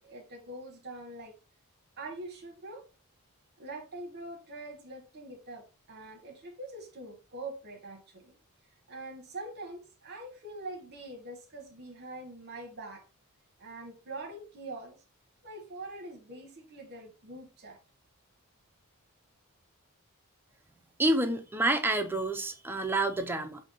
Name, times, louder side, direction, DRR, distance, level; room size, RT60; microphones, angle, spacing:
voice 1, 0.0-1.3 2.0-2.8 3.6-8.4 8.9-13.0 13.6-15.0 15.4-17.8, right 2 dB, 50° right, 0.9 m, -44 dB
voice 2, 21.0-23.6, right 2 dB, 10° right, 0.5 m, -28 dB
5.1 x 2.7 x 3.8 m
head